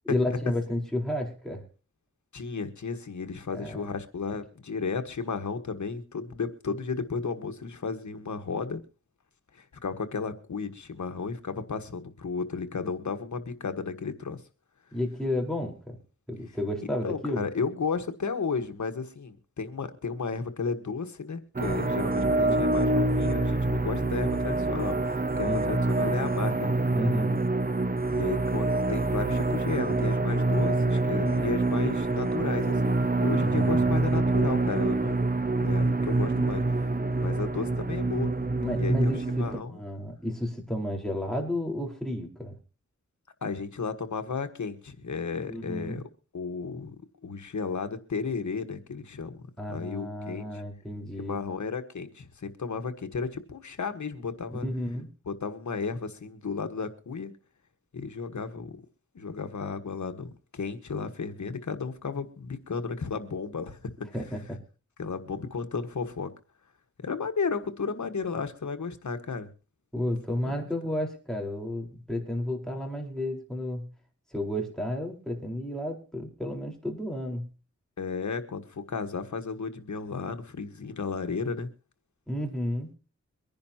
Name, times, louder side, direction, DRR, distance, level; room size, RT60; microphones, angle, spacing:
voice 1, 0.0-1.6 3.5-3.9 14.9-16.0 16.3-17.4 22.1-22.7 25.5-25.8 26.9-27.4 33.3-34.4 36.3-36.5 38.6-42.6 45.5-46.0 49.6-51.4 54.6-55.1 64.1-64.6 69.9-73.9 74.3-77.5 82.3-82.9, left 1 dB, ahead, 0 dB, 4.5 m, -32 dB
voice 2, 2.3-8.8 9.5-14.4 17.0-26.7 28.1-35.3 35.6-36.6 37.2-38.3 38.8-39.1 39.4-39.7 43.4-46.0 46.3-46.9 47.2-49.4 49.7-50.6 51.2-54.7 55.3-57.3 57.9-58.8 59.1-63.9 65.0-66.3 67.0-69.5 70.4-70.5 78.0-81.7, left 5 dB, 80° left, 7 dB, 1.5 m, -33 dB
sound 1, 21.6-39.6, right 2 dB, 30° right, 1.1 m, -26 dB
23.5 x 10.5 x 2.9 m, 0.35 s
wide cardioid pair, 70°, 29 cm